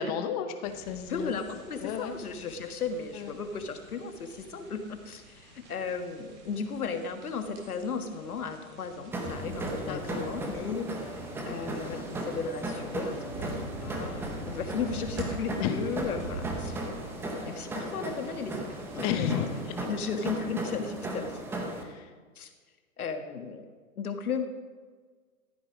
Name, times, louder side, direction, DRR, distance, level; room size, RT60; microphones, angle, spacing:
voice 1, 0.0-1.5 1.8-2.1 3.1-3.3 9.8-10.3 15.6-15.9 19.0-19.8 21.7-22.1, left 8 dB, 25° left, 8 dB, 0.9 m, -32 dB
sound 1, 0.6-19.8, right 2 dB, 25° right, 2.2 m, -44 dB
voice 2, 1.1-11.2 11.4-13.5 13.8-16.8 17.4-19.3 19.8-21.4 22.3-22.5 23.0-23.7 24.0-24.5, left 5 dB, 80° left, 7 dB, 1.6 m, -35 dB
sound 2, 9.1-21.8, right 1 dB, 5° right, 0.7 m, -36 dB
14.0 x 8.4 x 5.0 m, 1.5 s
hypercardioid pair, 140°, 43 cm